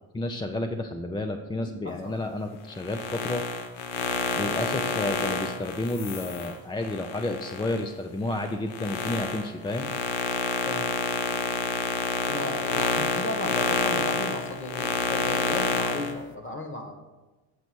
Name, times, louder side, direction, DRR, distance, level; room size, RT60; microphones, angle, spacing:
voice 1, 0.1-3.4 4.4-9.9, left 2 dB, 10° left, 4 dB, 0.4 m, -31 dB
voice 2, 1.6-2.1 10.6-10.9 12.2-16.9, left 2 dB, 30° left, 5 dB, 1.4 m, -35 dB
sound 1, 2.7-7.8 8.3-16.1, left 5 dB, 85° left, 0.9 m, -28 dB
8.0 x 4.1 x 6.1 m, 1.2 s
cardioid pair, 100°, 44 cm